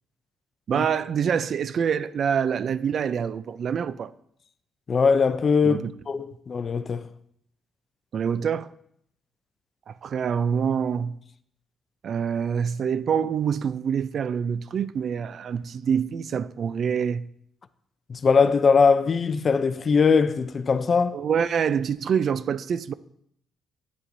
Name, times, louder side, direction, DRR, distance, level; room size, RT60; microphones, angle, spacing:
voice 1, 0.7-4.1 5.6-5.9 8.1-8.7 9.9-11.2 12.0-17.3 21.1-22.9, right 7 dB, 55° right, 0.4 m, -26 dB
voice 2, 4.9-7.1 18.1-21.2, left 5 dB, 40° left, 0.5 m, -21 dB
9.9 x 9.3 x 2.6 m
cardioid pair, 90°, 0 cm